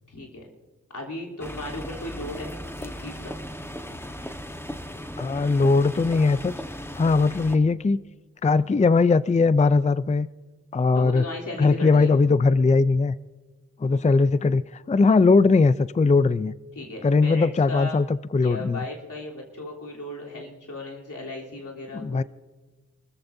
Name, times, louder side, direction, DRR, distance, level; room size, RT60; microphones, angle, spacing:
voice 1, 0.1-0.5 0.9-2.5 2.8-3.3 10.9-12.1 16.7-18.0 18.4-22.2, left 2 dB, 85° left, 3.4 m, -36 dB
sound 1, 1.4-7.6, equal, 10° left, 1.3 m, -37 dB
voice 2, 5.2-6.5 7.0-8.0 8.4-10.3 10.7-11.2 11.6-13.1 13.8-16.5 17.0-18.1 18.3-18.8 21.9-22.2, left 4 dB, 25° left, 0.4 m, -20 dB
27.0 x 14.0 x 2.7 m
cardioid pair, 45°, 30 cm